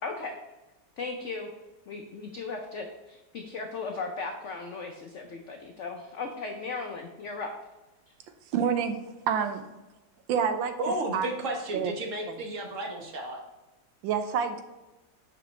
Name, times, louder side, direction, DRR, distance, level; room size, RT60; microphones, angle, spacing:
voice 1, 0.0-0.3 1.0-1.5 1.9-7.5, left 4 dB, 80° left, 3 dB, 0.6 m, -37 dB
voice 2, 8.5-9.0 9.3-9.7 10.3-10.7 11.1-11.3 11.7-11.9 12.3-12.4 14.0-14.6, right 7 dB, 85° right, 8 dB, 1.4 m, -27 dB
voice 3, 10.8-13.4, right 2 dB, 45° right, 1 dB, 1.3 m, -33 dB
6.0 x 5.0 x 3.2 m, 1.1 s
omnidirectional pair, 2.1 m